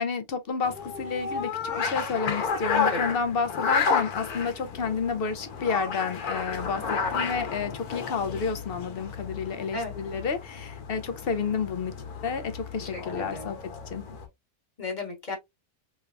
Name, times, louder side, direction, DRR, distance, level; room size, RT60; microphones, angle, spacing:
voice 1, 0.0-11.9 12.2-13.6 13.9-14.0, left 5 dB, 65° left, 0.6 m, -30 dB
sound 1, 0.6-14.3, left 5 dB, 85° left, 1.4 m, -32 dB
voice 2, 12.9-13.5 14.8-15.4, left 2 dB, 35° left, 1.2 m, -34 dB
3.4 x 3.3 x 2.3 m
omnidirectional pair, 1.6 m